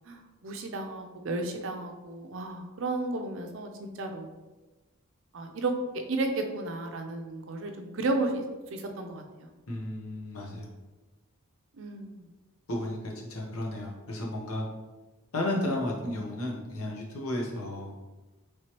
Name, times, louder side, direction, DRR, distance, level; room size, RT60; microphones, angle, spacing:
voice 1, 0.1-4.3 5.3-5.7 6.1-8.4 8.7-9.5 11.8-12.3, right 2 dB, 60° right, 4 dB, 0.4 m, -33 dB
voice 2, 9.7-10.7 12.7-14.7 15.3-17.9, left 1 dB, 90° left, -1 dB, 0.8 m, -33 dB
3.2 x 3.0 x 2.9 m, 1.2 s
head